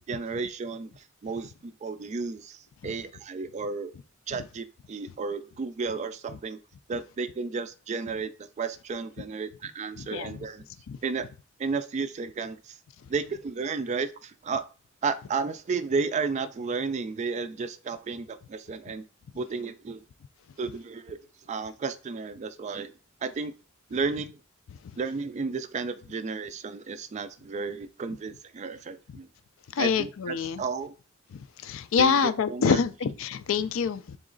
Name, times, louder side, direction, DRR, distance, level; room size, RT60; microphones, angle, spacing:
voice 1, 0.0-3.9 4.3-6.6 6.9-10.6 11.0-11.3 11.6-12.8 13.1-14.6 15.0-19.0 19.3-20.0 20.6-21.2 21.5-22.9 23.2-23.5 23.9-24.4 25.0-29.3 29.8-30.9 32.0-32.8, right 4 dB, 35° right, 0.3 m, -33 dB
voice 2, 10.0-10.4 10.9-11.0 24.8-24.9 29.7-30.6 31.3-34.2, left 6 dB, 70° left, 0.4 m, -26 dB
3.8 x 3.1 x 3.8 m
head